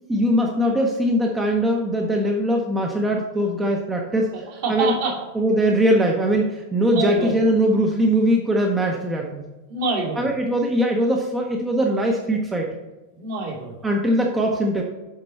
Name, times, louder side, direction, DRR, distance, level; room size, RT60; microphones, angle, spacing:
voice 1, 0.1-4.3 4.7-4.9 5.3-9.4 10.2-12.7 13.8-14.8, equal, 15° right, 1 dB, 0.8 m, -21 dB
voice 2, 4.3-5.1 6.9-7.4 9.7-10.3 13.1-13.8, right 3 dB, 55° right, -3 dB, 2.6 m, -26 dB
7.4 x 5.3 x 4.2 m, 1.1 s
figure-of-eight pair, 90°, 0 cm